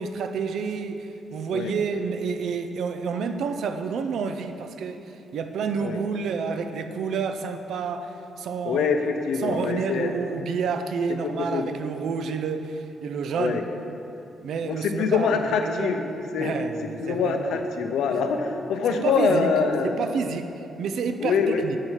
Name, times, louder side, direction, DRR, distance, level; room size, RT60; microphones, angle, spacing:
voice 1, 0.0-8.9 9.4-13.6 14.4-15.9 16.4-17.6 18.9-19.5 19.8-21.8, right 5 dB, 70° right, 8 dB, 0.4 m, -29 dB
voice 2, 8.6-10.1 11.4-11.6 13.4-13.6 14.6-16.1 16.3-16.5 17.0-20.0 21.2-21.6, left 5 dB, 85° left, 5 dB, 0.5 m, -24 dB
6.5 x 5.6 x 4.5 m, 2.8 s
cardioid pair, 155°, 0 cm